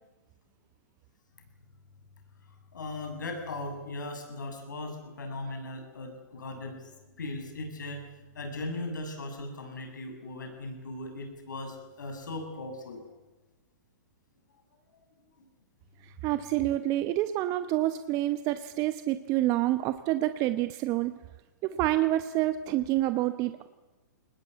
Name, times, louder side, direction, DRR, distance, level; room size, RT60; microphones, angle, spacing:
voice 1, 2.7-8.0 8.3-13.0 15.4-15.5, left 2 dB, 85° left, 4 dB, 6.9 m, -38 dB
voice 2, 16.0-21.1 21.6-23.5, right 15 dB, 35° right, 11 dB, 1.0 m, -28 dB
22.5 x 20.0 x 8.4 m, 1.2 s
hypercardioid pair, 125°, 10 cm